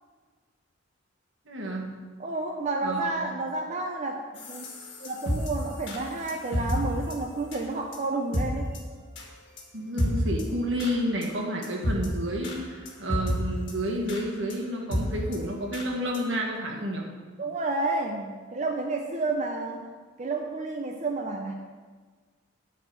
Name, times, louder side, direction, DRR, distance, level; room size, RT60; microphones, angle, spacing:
voice 1, 1.4-1.9 2.8-3.1 9.7-17.1 19.3-19.4, equal, 75° right, -1 dB, 1.6 m, -30 dB
voice 2, 2.2-4.7 5.0-8.7 17.4-19.9 20.2-21.5, right 2 dB, 40° right, 2 dB, 0.6 m, -30 dB
sound 1, 4.4-6.8 7.1-7.2 7.5-7.6 7.9-8.0 8.3-8.4 8.7-8.8 9.2-9.3 9.6-9.7 10.0-10.4 10.8-10.9 11.2-11.3 11.6-12.1 12.4-12.6 12.9-13.4 13.7-13.8 14.1-14.2 14.5-14.6 14.9-15.0 15.3-15.4 15.7-15.9 16.1-16.2 16.6-16.7, equal, 65° left, 1.7 m, -29 dB
9.5 x 4.2 x 6.9 m, 1.5 s
head